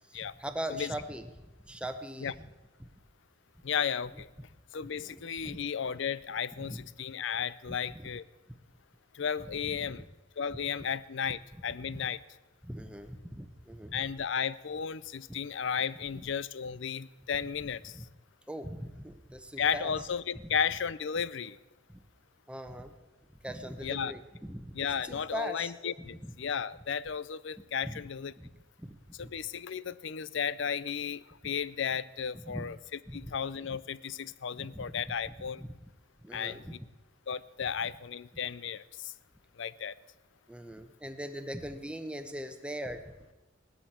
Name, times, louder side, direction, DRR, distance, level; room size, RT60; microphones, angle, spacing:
voice 1, 0.1-1.3 1.7-2.4 2.8-2.9 5.0-5.6 6.6-6.9 7.9-8.0 9.6-9.9 11.8-12.0 12.6-14.0 16.1-16.2 17.9-18.0 18.5-20.0 20.4-20.6 21.9-22.0 22.5-22.9 23.4-24.8 25.0-25.7 26.0-26.1 27.8-28.0 28.4-28.5 28.8-29.3 32.3-32.7 33.1-33.3 33.7-33.8 34.6-35.5 36.2-36.7 40.5-43.1, equal, 5° right, 8 dB, 0.9 m, -41 dB
voice 2, 3.6-4.3 4.7-8.2 9.1-10.1 10.4-12.2 13.9-17.9 19.6-21.6 23.8-24.1 24.7-28.3 29.2-32.8 33.1-35.6 36.3-36.8 37.3-39.1 39.6-39.9, left 7 dB, 60° left, 18 dB, 0.5 m, -34 dB
18.5 x 12.5 x 4.4 m, 1.1 s
head